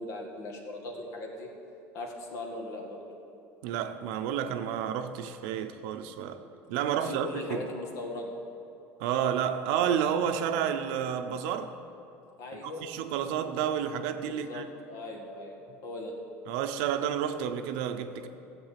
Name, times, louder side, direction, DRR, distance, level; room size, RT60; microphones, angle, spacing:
voice 1, 0.0-1.5 1.9-3.0 6.4-6.5 7.0-8.3 12.4-12.9 14.2-15.6 15.8-16.1, left 2 dB, 65° left, 1.9 m, -39 dB
voice 2, 3.6-6.4 6.7-7.7 9.0-11.8 12.6-14.7 16.5-18.3, right 8 dB, 80° right, 0.7 m, -30 dB
13.5 x 7.8 x 5.8 m
cardioid pair, 145°, 6 cm